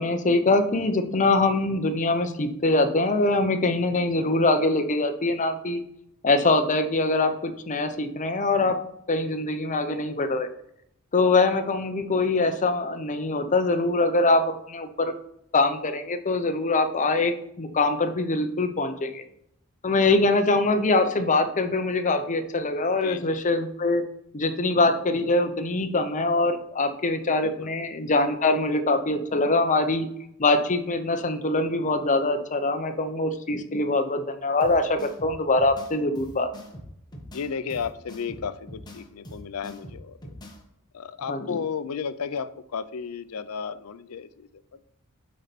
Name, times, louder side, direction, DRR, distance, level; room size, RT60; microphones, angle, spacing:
voice 1, 0.0-5.8 6.2-8.8 9.1-10.5 11.1-15.1 15.5-19.2 19.8-24.0 24.3-30.1 30.4-36.5 41.3-41.5, left 2 dB, 35° left, 0.8 m, -23 dB
voice 2, 23.0-23.4 27.2-27.7 37.3-40.2 40.9-44.5, left 6 dB, 70° left, 0.5 m, -33 dB
sound 1, 34.6-40.6, equal, 20° left, 1.2 m, -43 dB
8.6 x 4.3 x 4.1 m
head